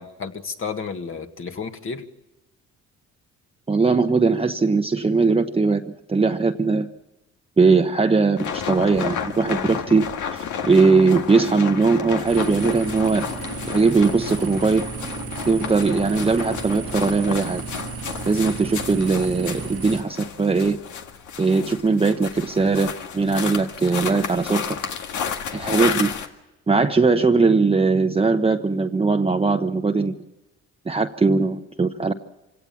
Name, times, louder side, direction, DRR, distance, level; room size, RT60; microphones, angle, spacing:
voice 1, 0.0-2.0, left 5 dB, 45° left, 5 dB, 2.0 m, -32 dB
voice 2, 3.7-6.9 7.6-13.3 13.7-14.8 15.5-17.6 18.3-20.8 21.4-24.8 25.5-26.1 26.7-30.2 30.9-32.1, right 4 dB, 20° right, 5 dB, 0.9 m, -20 dB
sound 1, 8.4-26.3, left 7 dB, 80° left, 1.9 m, -31 dB
sound 2, 12.3-20.0, right 6 dB, 50° right, 1.4 m, -34 dB
26.5 x 17.5 x 7.2 m, 1.0 s
cardioid pair, 90°, 30 cm